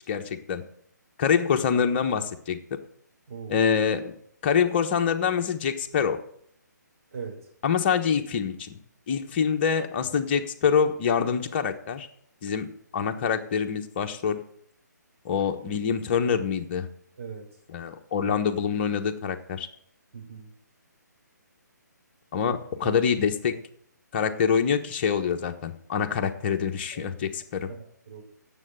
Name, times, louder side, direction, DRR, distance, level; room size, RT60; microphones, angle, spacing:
voice 1, 0.1-0.6 1.2-2.6 3.5-4.1 4.4-6.2 7.6-8.8 9.1-12.1 12.4-14.4 15.2-16.9 17.7-19.7 22.3-23.5 24.1-27.7, left 7 dB, 35° left, 6 dB, 1.2 m, -25 dB
voice 2, 3.3-3.6 7.1-7.5 17.2-17.5 18.2-18.4 20.1-20.5 22.4-22.5 22.8-23.0 26.9-27.1 27.7-28.2, right 5 dB, 45° right, 1 dB, 4.1 m, -39 dB
9.7 x 7.7 x 8.9 m, 0.67 s
figure-of-eight pair, 140°, 10 cm